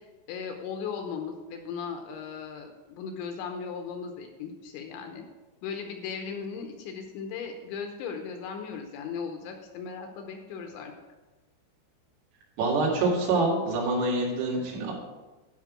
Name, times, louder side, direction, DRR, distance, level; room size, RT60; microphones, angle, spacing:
voice 1, 0.3-5.2 5.6-10.9 14.6-14.9, left 6 dB, 80° left, 4 dB, 2.9 m, -37 dB
voice 2, 12.6-14.9, right 2 dB, 90° right, -2 dB, 5.0 m, -26 dB
12.0 x 5.5 x 6.2 m, 1.2 s
omnidirectional pair, 5.9 m